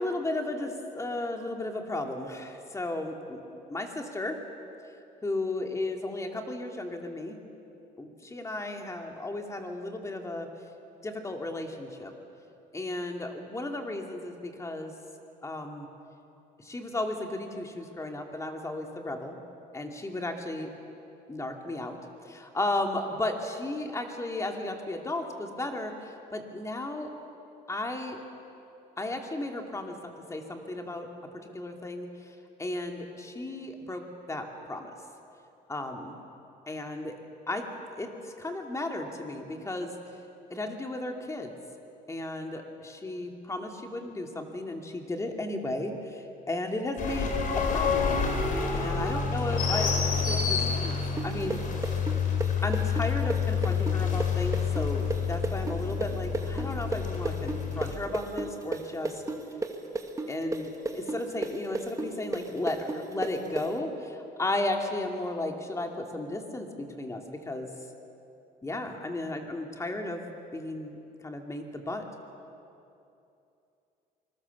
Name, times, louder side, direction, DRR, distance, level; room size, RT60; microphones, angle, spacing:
voice 1, 0.0-3.4 3.7-4.4 5.2-7.4 8.0-10.5 11.0-12.1 12.7-14.9 15.4-15.9 16.6-19.4 19.7-20.7 21.3-22.0 22.2-27.1 27.7-28.2 29.0-31.1 31.5-32.1 32.6-34.9 35.7-36.1 36.7-37.1 37.5-37.7 38.0-39.9 40.5-41.5 42.1-48.2 48.7-50.9 51.2-51.6 52.6-59.2 60.3-67.7 68.6-71.0 71.2-72.1, left 2 dB, 20° left, 3 dB, 2.6 m, -34 dB
sound 1, 47.0-57.9, left 6 dB, 50° left, 4.1 m, -28 dB
sound 2, 51.2-58.8 59.0-63.6, right 3 dB, 20° right, 2.0 m, -32 dB
25.5 x 20.5 x 7.2 m, 2.7 s
cardioid pair, 110°, 17 cm